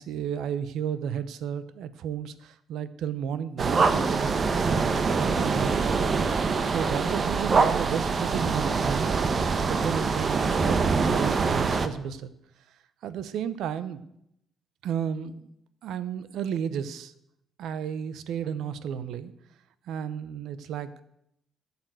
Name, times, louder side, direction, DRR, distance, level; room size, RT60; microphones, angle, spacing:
voice 1, 0.0-4.7 5.1-6.0 6.6-9.2 9.6-12.3 13.0-14.0 14.8-15.5 15.8-17.1 17.6-19.3 19.9-21.0, right 8 dB, 80° right, 14 dB, 0.8 m, -32 dB
sound 1, 3.6-11.9, right 4 dB, 40° right, 1.0 m, -24 dB
11.5 x 7.1 x 7.9 m, 0.77 s
cardioid pair, 90°, 0 cm